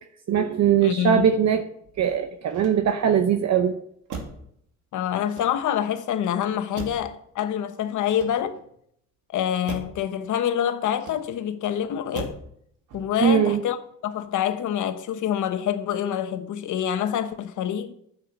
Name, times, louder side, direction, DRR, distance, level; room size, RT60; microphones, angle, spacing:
voice 1, 0.3-1.6 2.0-3.8 13.2-13.6, right 8 dB, 60° right, 0.9 m, -21 dB
voice 2, 0.8-1.3 4.9-8.6 9.3-12.4 12.9-17.9, left 10 dB, 80° left, 1.1 m, -26 dB
Motor vehicle (road), 2.4-3.2 4.1-4.5 5.2-5.9 6.7-7.2 8.0-8.7 9.6-10.0 10.9-11.5 12.1-12.5 12.9-13.3, right 4 dB, 85° right, 2.4 m, -39 dB
9.8 x 7.7 x 6.6 m
cardioid pair, 90°, 30 cm